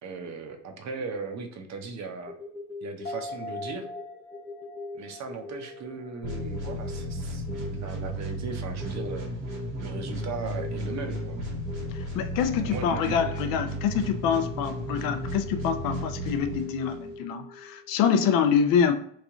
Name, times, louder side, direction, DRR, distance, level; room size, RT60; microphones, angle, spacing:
voice 1, 0.0-2.4 2.8-3.9 4.9-9.3 9.8-11.4 12.6-13.2, right 4 dB, 45° right, 0.7 m, -37 dB
sound 1, 2.3-17.9, left 3 dB, ahead, 0.6 m, -43 dB
sound 2, 3.0-6.7 7.1-7.2, left 2 dB, 35° left, 1.2 m, -42 dB
sound 3, 6.2-17.2, right 1 dB, 90° right, 1.5 m, -34 dB
voice 2, 11.9-18.9, left 7 dB, 60° left, 0.5 m, -26 dB
3.1 x 2.5 x 3.6 m
supercardioid pair, 90°, 39 cm